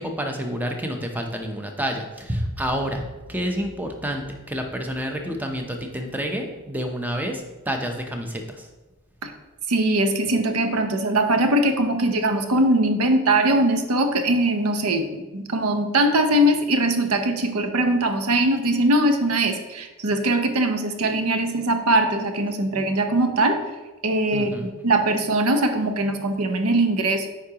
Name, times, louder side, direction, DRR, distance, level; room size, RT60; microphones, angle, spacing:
voice 1, 0.0-8.7 24.3-24.7, equal, 10° right, 3 dB, 0.6 m, -29 dB
voice 2, 9.7-23.6 24.0-27.3, right 1 dB, 75° right, 6 dB, 0.7 m, -21 dB
8.4 x 4.7 x 2.9 m, 1.1 s
head